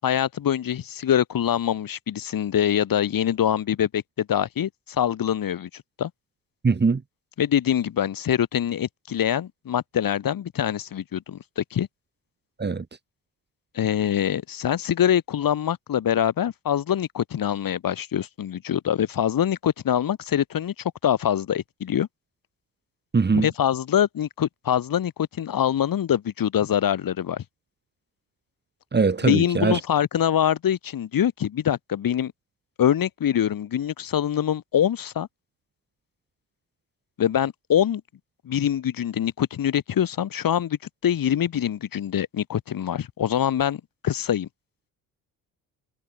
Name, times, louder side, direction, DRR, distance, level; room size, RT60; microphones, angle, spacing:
voice 1, 0.0-6.1 7.4-11.9 13.7-20.7 21.0-22.1 23.3-25.1 25.4-27.4 29.2-32.3 32.8-35.3 37.2-38.0 38.4-40.8 41.0-44.5, left 10 dB, 60° left, 6.5 m, -24 dB
voice 2, 6.6-7.0 12.6-12.8 23.1-23.5 28.9-29.8, right 4 dB, 25° right, 2.5 m, -21 dB
supercardioid pair, 75°, 38 cm